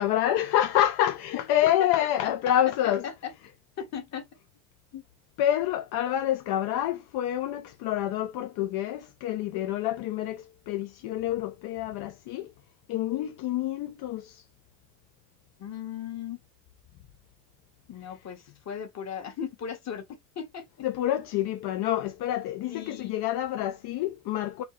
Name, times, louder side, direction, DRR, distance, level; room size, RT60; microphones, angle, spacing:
voice 1, 0.0-3.0 5.4-12.5 12.9-14.4 20.8-24.6, left 12 dB, 75° left, 0.7 m, -27 dB
voice 2, 2.2-2.5 2.8-4.3 4.9-5.0 15.6-16.4 17.9-20.0 20.3-20.8 22.7-23.1, left 8 dB, 40° left, 1.6 m, -37 dB
4.3 x 2.8 x 3.1 m
cardioid pair, 110°, 39 cm